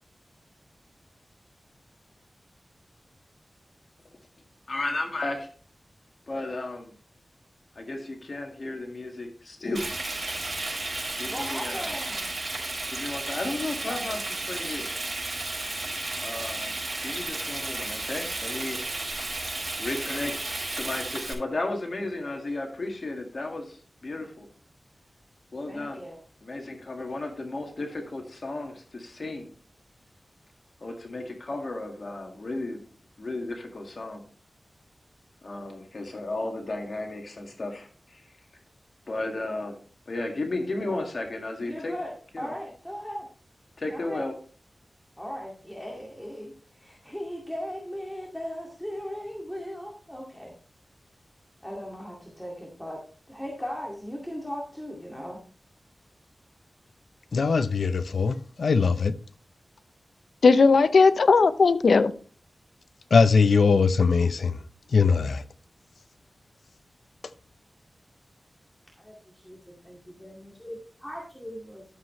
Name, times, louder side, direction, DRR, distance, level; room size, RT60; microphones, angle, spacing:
voice 1, 4.7-5.5 6.3-6.9 7.8-9.9 11.2-11.9 12.9-14.9 16.2-16.8 17.0-18.9 19.3-19.4 19.8-23.8 24.0-24.5 25.5-26.0 26.4-29.5 30.8-32.8 33.2-34.2 35.4-38.2 39.1-39.8 40.1-41.9 42.3-42.5 43.8-44.3, left 2 dB, 55° left, 1.8 m, -34 dB
Frying (food), 9.7-21.3, right 2 dB, 45° right, 5.2 m, -33 dB
voice 2, 11.3-12.3 25.7-26.2 41.6-43.3 43.9-44.2 45.2-46.5 46.8-50.5 51.6-55.4 69.0-69.1 69.4-69.6 69.8-71.8, equal, 5° left, 2.1 m, -38 dB
voice 3, 57.3-59.1 60.4-62.1 63.1-64.6 64.9-65.4, left 4 dB, 85° left, 0.6 m, -19 dB
12.5 x 7.4 x 3.1 m
wide cardioid pair, 80°, 0 cm